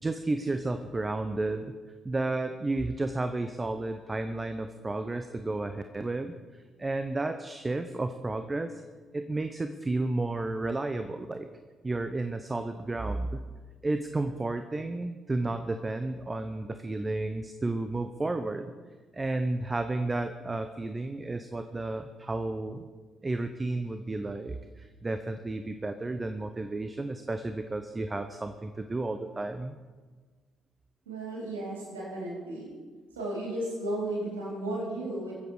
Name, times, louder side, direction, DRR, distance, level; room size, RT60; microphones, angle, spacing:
voice 1, 0.0-1.7 2.0-6.3 6.8-8.8 9.1-11.5 11.8-13.4 13.8-18.7 19.1-22.8 23.2-29.8, right 2 dB, 25° right, 9 dB, 0.8 m, -32 dB
voice 2, 31.1-32.7 33.1-35.3, right 1 dB, 85° right, -4 dB, 3.8 m, -34 dB
22.0 x 8.0 x 4.9 m, 1.4 s
hypercardioid pair, 45°, 0 cm